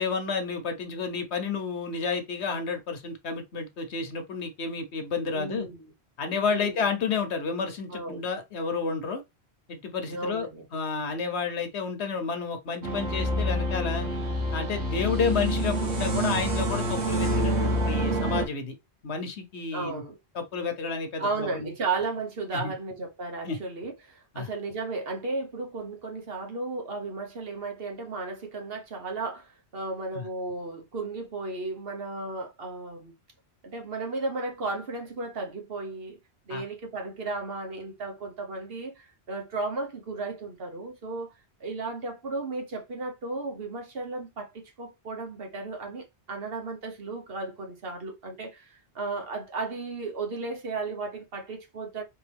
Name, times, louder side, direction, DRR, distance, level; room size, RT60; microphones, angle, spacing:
voice 1, 0.0-5.7 6.2-9.2 9.7-14.1 14.5-18.7 19.0-20.0 20.3-21.7 22.5-22.7 23.4-23.6 24.3-24.5 36.5-36.6, left 5 dB, 80° left, 1.2 m, -31 dB
voice 2, 5.3-5.9 6.5-6.8 7.9-8.3 10.1-10.7 19.7-20.2 21.2-33.1 33.6-36.2 36.5-41.3 41.6-52.0, right 3 dB, 60° right, 1.3 m, -34 dB
sound 1, 12.8-18.4, equal, 80° right, 1.6 m, -27 dB
4.0 x 3.4 x 3.4 m
omnidirectional pair, 1.1 m